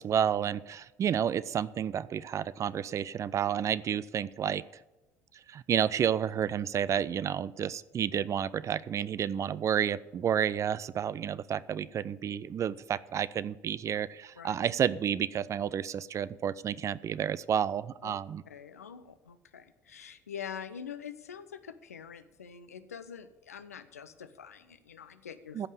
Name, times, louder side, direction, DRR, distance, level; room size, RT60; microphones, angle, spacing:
voice 1, 0.0-4.6 5.5-18.4 25.6-25.7, right 9 dB, 40° right, 19 dB, 0.5 m, -30 dB
voice 2, 18.5-25.6, left 8 dB, 85° left, 11 dB, 0.7 m, -45 dB
14.5 x 5.4 x 8.1 m, 1.1 s
figure-of-eight pair, 60°, 8 cm